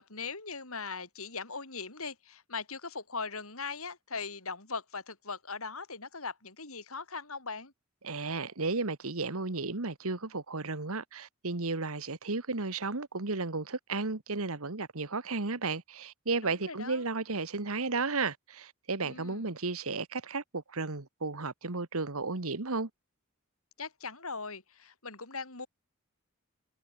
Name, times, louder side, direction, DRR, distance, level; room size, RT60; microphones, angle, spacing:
voice 1, 0.0-7.7 16.4-17.1 19.0-19.4 23.8-25.7, left 4 dB, 75° left, 5.8 m, -40 dB
voice 2, 8.0-22.9, right 3 dB, 75° right, 1.6 m, -33 dB
head